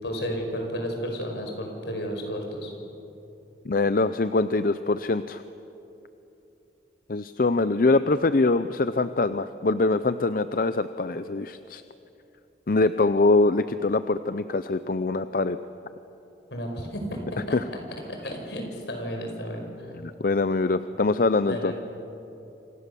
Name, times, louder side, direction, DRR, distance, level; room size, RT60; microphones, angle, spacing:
voice 1, 0.0-2.7 16.5-17.6 18.1-19.9 21.4-21.7, equal, 75° left, 3 dB, 5.5 m, -32 dB
voice 2, 3.6-5.4 7.1-11.8 12.7-15.6 20.0-21.7, left 3 dB, 50° left, 12 dB, 0.6 m, -23 dB
28.0 x 26.5 x 7.0 m, 2.9 s
head